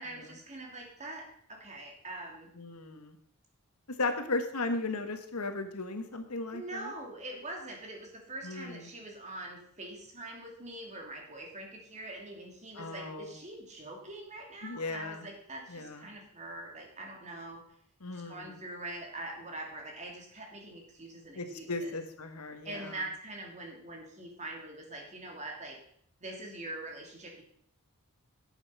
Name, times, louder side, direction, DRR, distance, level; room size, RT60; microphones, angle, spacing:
voice 1, 0.0-2.5 6.5-17.6 18.1-21.9 22.6-25.8 26.2-27.4, right 2 dB, 30° right, 1 dB, 2.7 m, -43 dB
voice 2, 2.6-3.2 4.0-6.9 8.4-8.9 12.8-13.3 14.6-15.3 15.7-16.1 18.0-18.6 21.3-23.0, left 3 dB, 80° left, 7 dB, 1.4 m, -36 dB
11.0 x 8.2 x 5.5 m, 0.65 s
head